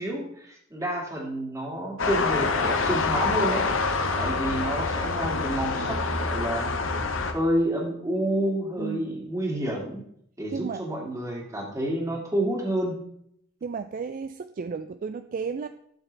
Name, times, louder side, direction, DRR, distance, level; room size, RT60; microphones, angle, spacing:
voice 1, 0.0-3.6 4.2-6.7 7.3-10.0 10.4-12.9, right 1 dB, 15° right, -1 dB, 2.3 m, -29 dB
sound 1, 2.0-7.3, left 4 dB, 80° left, 1.1 m, -26 dB
voice 2, 8.8-9.1 10.5-10.8 13.6-15.7, right 5 dB, 45° right, 10 dB, 0.3 m, -33 dB
12.5 x 7.0 x 3.3 m, 0.71 s
head